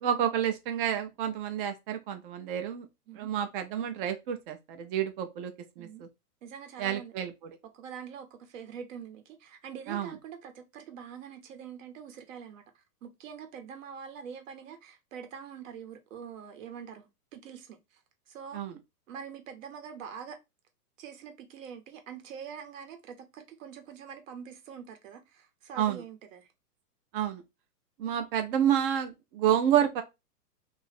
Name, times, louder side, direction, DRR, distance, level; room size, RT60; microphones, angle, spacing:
voice 1, 0.0-2.9 3.1-6.1 6.8-7.3 9.9-10.1 18.5-18.8 25.8-26.0 27.1-27.4 28.0-30.0, right 10 dB, 35° right, 0.7 m, -29 dB
voice 2, 6.4-7.1 7.7-12.6 13.0-18.0 18.3-18.6 19.1-20.4 21.0-26.5, right 7 dB, 55° right, 1.1 m, -44 dB
3.0 x 2.6 x 4.2 m
hypercardioid pair, 130°, 48 cm